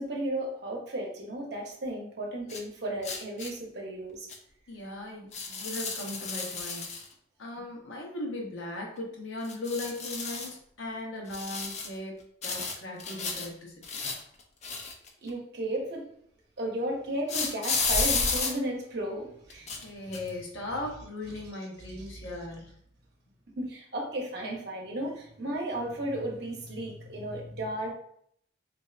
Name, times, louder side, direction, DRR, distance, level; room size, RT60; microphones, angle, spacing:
voice 1, 0.0-4.3 15.2-16.0 16.6-19.7 23.6-27.9, right 1 dB, 55° right, -1 dB, 0.7 m, -34 dB
sound 1, 2.5-2.6 3.0-3.5 4.3-4.4 5.3-7.1 9.4-10.5 11.3-12.0 12.4-13.5 13.8-15.3 17.3-18.5 19.5-19.8 20.1-20.3, left 4 dB, 35° left, 0.4 m, -32 dB
voice 2, 4.7-7.0 7.4-14.0 19.8-22.7, left 1 dB, 80° left, -1 dB, 0.8 m, -38 dB
3.1 x 2.6 x 2.4 m, 0.68 s
head